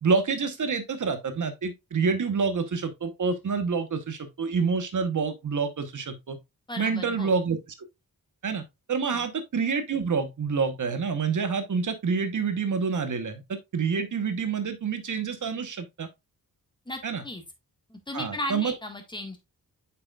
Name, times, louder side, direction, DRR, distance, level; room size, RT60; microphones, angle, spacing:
voice 1, 0.0-6.4 6.8-7.6 8.4-8.6 8.9-16.1 17.0-17.2 18.1-18.7, right 5 dB, 55° right, 1.1 m, -27 dB
voice 2, 6.7-7.3 9.1-9.3 16.8-17.4 17.9-19.4, left 1 dB, 15° left, 1.7 m, -36 dB
8.0 x 5.7 x 2.4 m
wide cardioid pair, 125°, 36 cm